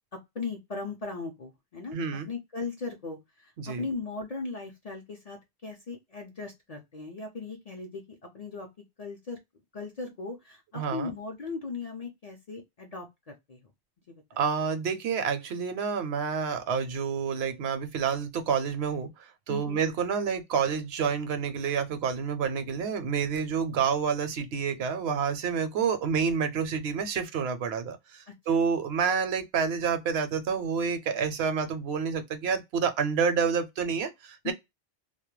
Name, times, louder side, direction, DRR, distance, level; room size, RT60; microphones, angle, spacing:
voice 1, 0.1-2.0 2.2-8.0 8.3-8.7 9.0-9.4 9.7-13.6 14.1-14.4 19.5-19.8 28.3-28.6 34.4-34.5, left 4 dB, 50° left, 0.5 m, -38 dB
voice 2, 1.9-2.3 3.6-3.9 10.7-11.1 14.4-34.5, right 6 dB, 70° right, 0.8 m, -28 dB
2.2 x 2.1 x 3.0 m
omnidirectional pair, 1.1 m